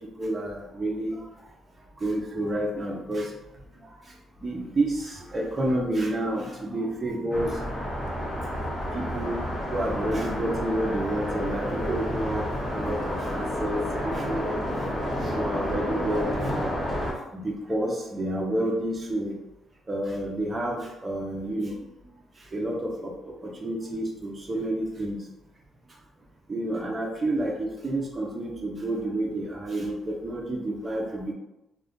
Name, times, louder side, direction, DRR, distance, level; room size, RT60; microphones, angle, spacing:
voice 1, 0.2-1.2 2.0-3.3 4.0-4.1 4.4-7.6 8.9-9.4 9.7-14.5 15.4-16.5 17.3-19.4 19.9-21.8 22.4-25.2 26.5-31.3, right 1 dB, 25° right, -1 dB, 0.5 m, -29 dB
sound 1, 7.3-17.1, equal, 20° left, 1.1 m, -30 dB
2.4 x 2.2 x 3.5 m, 0.92 s
cardioid pair, 90°, 0 cm